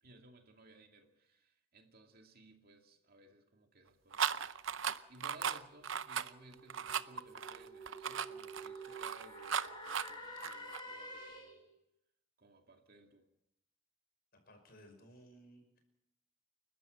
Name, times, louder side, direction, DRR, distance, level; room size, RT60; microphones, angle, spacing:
voice 1, 0.0-11.6 12.4-13.3, right 2 dB, 45° right, 4 dB, 2.4 m, -60 dB
sound 1, 4.1-10.8, right 7 dB, 65° right, 0.7 m, -37 dB
sound 2, 5.6-11.7, right 1 dB, 25° left, 5.7 m, -50 dB
voice 2, 14.5-15.8, equal, 50° left, 5 dB, 5.5 m, -58 dB
29.0 x 12.5 x 7.8 m, 0.82 s
head